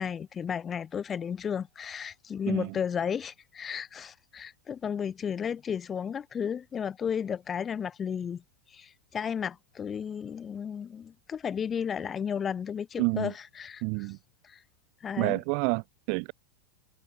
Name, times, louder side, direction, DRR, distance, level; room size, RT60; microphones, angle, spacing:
voice 1, 0.0-8.4 8.7-13.8 14.4-14.6 15.0-15.4, left 7 dB, 20° left, 4.6 m, -33 dB
voice 2, 13.0-13.3 13.8-14.2 15.2-16.3, right 40 dB or more, 45° right, 2.1 m, -29 dB
figure-of-eight pair, 90°, 0 cm